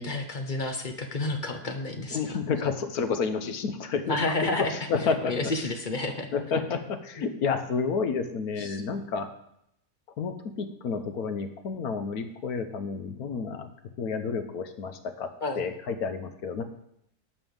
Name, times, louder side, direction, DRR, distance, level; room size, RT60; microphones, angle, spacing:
voice 1, 0.0-2.4 4.1-6.3 7.2-7.3 8.6-8.8 15.4-15.7, left 2 dB, 40° left, 5 dB, 0.8 m, -31 dB
voice 2, 2.1-5.3 6.3-9.3 10.2-13.7 14.0-16.6, left 5 dB, 70° left, 8 dB, 1.3 m, -30 dB
10.0 x 5.5 x 7.1 m, 0.77 s
omnidirectional pair, 1.7 m